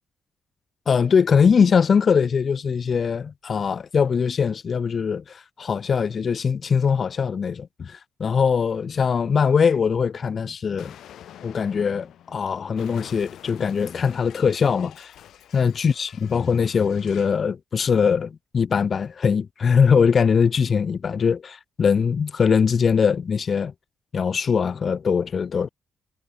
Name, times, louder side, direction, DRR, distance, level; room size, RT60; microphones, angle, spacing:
voice 1, 0.9-10.9 11.4-15.1 15.5-23.7 24.1-25.7, left 6 dB, 35° left, 0.3 m, -21 dB
Explosion, 10.8-17.4, left 11 dB, 75° left, 5.3 m, -47 dB
wide cardioid pair, 175°, 0 cm